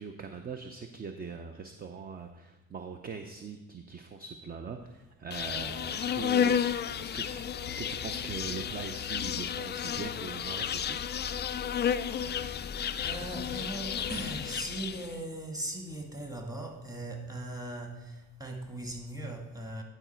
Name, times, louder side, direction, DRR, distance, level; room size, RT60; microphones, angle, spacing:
voice 1, 0.0-11.0 11.2-11.4, right 5 dB, 25° right, 6 dB, 0.6 m, -42 dB
Insect, 5.3-15.1, left 8 dB, 30° left, 0.4 m, -32 dB
voice 2, 12.2-12.7 13.0-19.8, right 1 dB, 10° right, 2 dB, 1.6 m, -39 dB
10.5 x 4.9 x 4.4 m, 1.0 s
cardioid pair, 95°, 36 cm